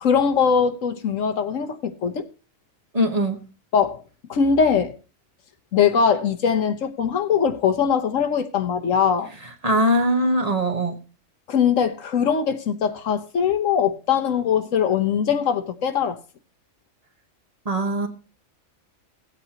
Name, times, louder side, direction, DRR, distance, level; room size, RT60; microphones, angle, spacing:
voice 1, 0.0-2.3 3.7-4.0 4.3-4.9 5.7-9.3 11.5-16.2, left 7 dB, 70° left, 1.3 m, -21 dB
voice 2, 2.9-3.4 9.6-11.0 17.6-18.1, equal, 30° right, 1.1 m, -21 dB
17.5 x 8.2 x 2.9 m
omnidirectional pair, 1.4 m